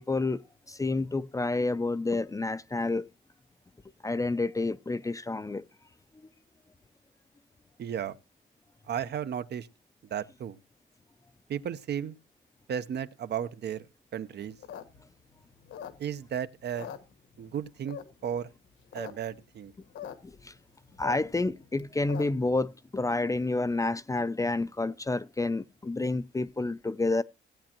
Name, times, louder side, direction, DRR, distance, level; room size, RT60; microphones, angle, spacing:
voice 1, 0.0-3.1 4.0-5.7 20.2-20.5 21.0-27.2, left 2 dB, 15° left, 0.5 m, -29 dB
voice 2, 7.8-8.2 8.9-9.7 10.1-10.6 11.5-12.2 12.7-13.9 14.1-14.6 16.0-16.9 17.4-18.5 18.9-19.7, right 9 dB, 60° right, 0.8 m, -34 dB
sound 1, 14.5-16.3 16.6-17.5 17.9-18.3 18.7-19.1 19.4-19.5 19.6-20.1 20.5-22.5, left 9 dB, 75° left, 1.4 m, -42 dB
17.0 x 8.6 x 2.9 m
cardioid pair, 90°, 20 cm